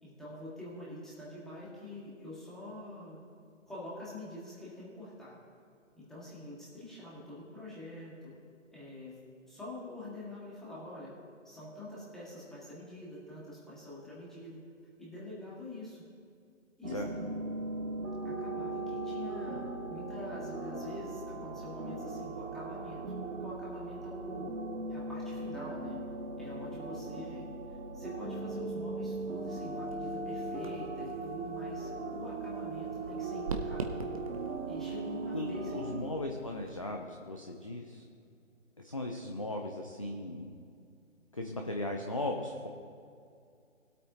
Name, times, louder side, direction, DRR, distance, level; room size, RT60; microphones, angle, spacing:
voice 1, 0.0-3.2 3.7-5.4 6.0-8.3 8.7-9.2 9.5-11.1 11.4-14.6 15.0-16.0 16.8-17.3 18.2-23.0 23.4-24.5 24.9-26.0 26.4-27.4 27.9-34.0 34.6-36.1, left 1 dB, ahead, -8 dB, 1.7 m, -45 dB
sound 1, 16.8-36.2, right 2 dB, 75° right, 1.5 m, -38 dB
sound 2, 29.2-36.9, right 3 dB, 25° right, 0.7 m, -45 dB
voice 2, 35.3-38.0 38.8-40.6 41.3-42.7, left 1 dB, 25° left, 2 dB, 0.4 m, -37 dB
20.0 x 8.4 x 2.8 m, 2.4 s
hypercardioid pair, 155°, 39 cm